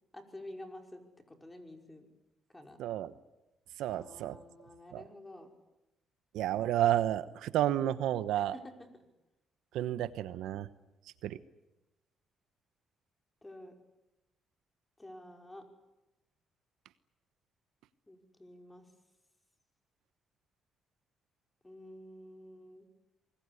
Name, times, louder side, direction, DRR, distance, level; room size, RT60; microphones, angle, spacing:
voice 1, 0.1-1.0 1.3-2.1 2.5-2.8 3.9-5.5 8.3-9.1 13.4-13.7 15.0-15.6 18.1-18.9 21.6-23.0, left 1 dB, 15° left, 4 dB, 5.5 m, -50 dB
voice 2, 2.8-3.1 3.8-4.3 4.9-5.0 6.3-8.5 9.7-10.7 11.2-11.4, right 12 dB, 90° right, 14 dB, 1.1 m, -31 dB
25.0 x 21.5 x 9.9 m, 0.96 s
cardioid pair, 90°, 0 cm